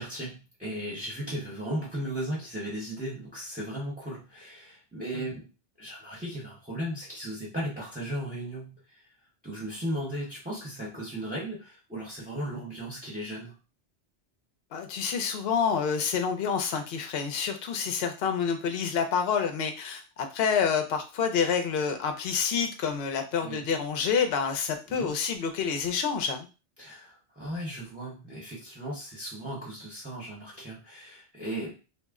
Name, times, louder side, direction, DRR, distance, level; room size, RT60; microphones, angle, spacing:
voice 1, 0.0-5.5 5.8-8.8 9.4-13.5 23.4-23.7 24.9-25.1 26.8-31.8, right 1 dB, 10° right, -5 dB, 0.7 m, -36 dB
voice 2, 14.7-26.5, left 6 dB, 65° left, 6 dB, 0.7 m, -28 dB
2.4 x 2.0 x 3.5 m, 0.31 s
omnidirectional pair, 1.2 m